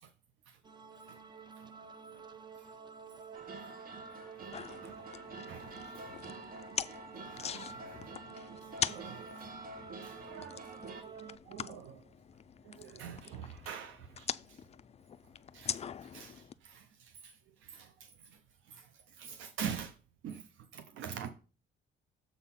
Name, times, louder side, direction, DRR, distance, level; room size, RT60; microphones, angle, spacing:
sound 1, 0.6-11.4, right 5 dB, 20° right, 0.7 m, -51 dB
sound 2, 3.3-11.0, right 3 dB, 45° right, 1.1 m, -48 dB
sound 3, 4.5-16.5, left 8 dB, 35° left, 0.4 m, -43 dB
voice 1, 5.5-6.2 7.3-8.1 8.8-9.5 10.0-12.0 12.7-14.3 15.5-17.3 17.6-17.9 18.7-18.8 19.2-19.9 20.2-20.4 20.7-21.3, right 8 dB, 80° right, 0.6 m, -45 dB
7.0 x 3.8 x 5.7 m
cardioid pair, 90°, 20 cm